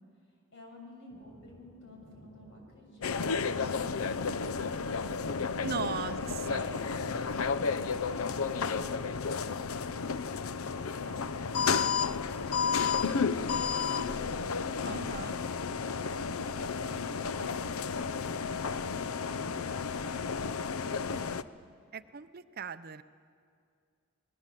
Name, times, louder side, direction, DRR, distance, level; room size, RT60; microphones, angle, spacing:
voice 1, 0.5-3.1 7.3-9.2 10.6-14.9, equal, 60° left, 0 dB, 6.7 m, -52 dB
Thunder, 1.1-8.1, equal, 35° left, 5.0 m, -60 dB
sound 1, 3.0-21.4, left 5 dB, 90° left, 0.7 m, -32 dB
voice 2, 5.6-6.7 14.8-15.4 21.9-23.0, right 6 dB, 45° right, 12 dB, 0.6 m, -38 dB
29.0 x 20.0 x 7.6 m, 2.2 s
head